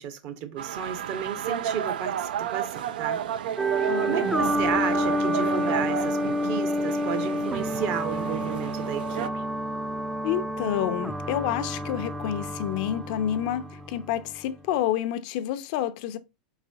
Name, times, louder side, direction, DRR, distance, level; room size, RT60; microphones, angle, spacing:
voice 1, 0.0-3.2 4.0-9.4, right 8 dB, 50° right, 0.9 m, -33 dB
sound 1, 0.6-9.3, right 10 dB, 85° right, 0.4 m, -32 dB
sound 2, 3.6-14.6, equal, 5° right, 0.4 m, -29 dB
voice 2, 3.9-4.4 10.2-16.2, left 11 dB, 60° left, 0.5 m, -29 dB
4.6 x 4.0 x 2.6 m
supercardioid pair, 125°, 5 cm